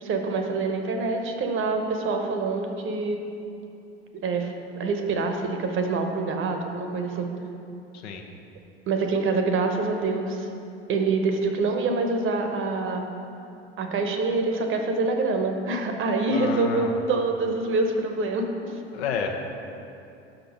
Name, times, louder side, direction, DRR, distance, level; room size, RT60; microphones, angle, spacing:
voice 1, 0.0-3.2 4.2-7.3 8.9-10.5 10.9-13.0 13.8-18.7, right 3 dB, 40° right, 4 dB, 0.9 m, -26 dB
voice 2, 16.3-17.0 18.9-19.6, left 5 dB, 70° left, 3 dB, 0.9 m, -30 dB
5.9 x 5.2 x 6.3 m, 2.7 s
hypercardioid pair, 75°, 33 cm